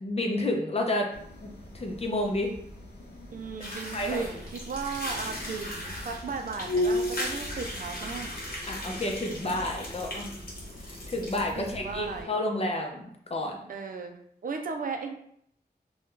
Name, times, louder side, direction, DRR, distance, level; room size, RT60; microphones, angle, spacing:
voice 1, 0.0-1.1 1.4-1.5 1.7-2.5 3.9-4.3 8.7-10.3 10.8-13.6, left 1 dB, 35° left, 1 dB, 0.6 m, -30 dB
sound 1, 1.1-12.2, left 1 dB, 85° left, 0.7 m, -38 dB
voice 2, 3.3-8.3 10.1-10.3 11.5-12.3 13.7-15.1, right 4 dB, 55° right, 4 dB, 0.4 m, -36 dB
sound 2, 3.6-11.7, left 1 dB, 60° left, 1.0 m, -39 dB
2.6 x 2.3 x 3.5 m, 0.68 s
wide cardioid pair, 80°, 17 cm